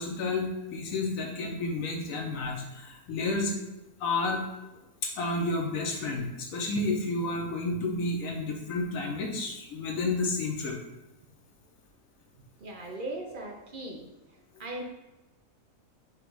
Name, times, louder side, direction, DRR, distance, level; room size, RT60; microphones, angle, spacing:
voice 1, 0.0-3.6 4.0-4.4 5.0-10.8, left 3 dB, 75° left, 1 dB, 1.1 m, -31 dB
voice 2, 12.6-14.1 14.6-14.8, right 2 dB, 55° right, 1 dB, 0.6 m, -38 dB
5.0 x 2.3 x 4.6 m, 1.0 s
omnidirectional pair, 1.5 m